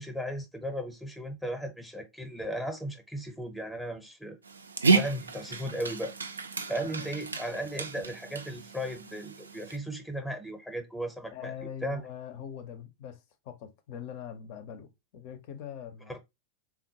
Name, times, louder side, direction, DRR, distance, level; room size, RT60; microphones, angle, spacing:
voice 1, 0.0-4.4 4.8-6.1 6.7-11.5 11.8-12.0 16.1-16.2, equal, ahead, 0.6 m, -36 dB
Dog, 4.4-9.8, right 4 dB, 75° right, 0.4 m, -31 dB
voice 2, 11.3-16.2, left 9 dB, 45° left, 0.5 m, -42 dB
3.6 x 2.1 x 2.7 m
figure-of-eight pair, 90°, 0 cm